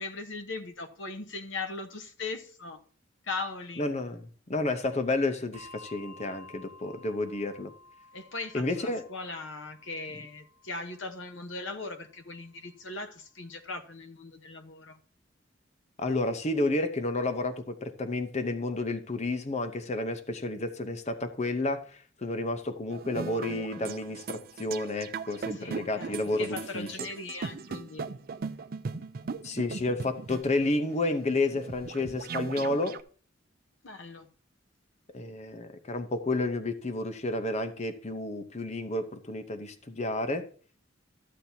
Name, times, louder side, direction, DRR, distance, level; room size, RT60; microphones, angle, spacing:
voice 1, 0.0-2.8 3.2-3.8 8.1-15.0 25.5-28.1 33.8-34.3, left 3 dB, 75° left, 1.1 m, -39 dB
voice 2, 3.8-4.2 4.5-7.7 8.5-9.1 16.0-21.8 22.2-26.9 29.4-33.0 35.1-40.5, left 2 dB, 35° left, 0.8 m, -31 dB
Bell, 5.5-12.4, left 2 dB, 30° right, 0.9 m, -53 dB
sound 1, 22.9-33.0, right 5 dB, 50° right, 0.4 m, -39 dB
13.5 x 7.5 x 2.8 m
head